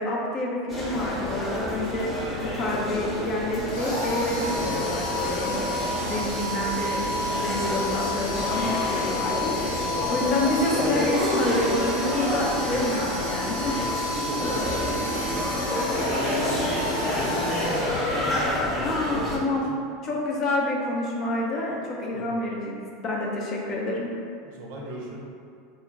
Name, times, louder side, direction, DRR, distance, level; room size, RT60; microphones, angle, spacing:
voice 1, 0.0-5.6 6.0-13.8 18.8-19.6 20.0-22.8 23.0-24.1, left 2 dB, 45° left, -2 dB, 0.5 m, -28 dB
sound 1, 0.7-19.4, left 1 dB, 5° left, 0.8 m, -29 dB
sound 2, 3.7-18.6, left 1 dB, 75° left, 0.8 m, -32 dB
voice 2, 14.1-15.5 16.0-19.8 22.1-22.3 24.4-25.2, right 2 dB, 70° right, -2 dB, 0.5 m, -38 dB
2.2 x 2.1 x 3.4 m, 2.4 s
hypercardioid pair, 100°, 0 cm